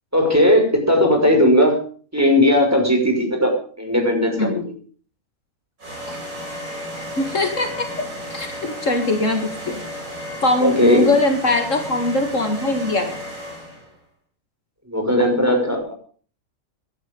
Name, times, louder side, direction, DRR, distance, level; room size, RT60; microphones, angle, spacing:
voice 1, 0.1-1.8 2.1-4.6 10.6-11.1 14.9-15.9, left 1 dB, 10° right, 2 dB, 5.8 m, -17 dB
sound 1, 5.8-13.9, equal, 65° right, 6.2 m, -33 dB
voice 2, 7.2-7.9 8.3-9.8 10.4-13.2, left 2 dB, 60° left, 5 dB, 2.4 m, -21 dB
18.0 x 11.5 x 5.4 m, 0.42 s
omnidirectional pair, 1.5 m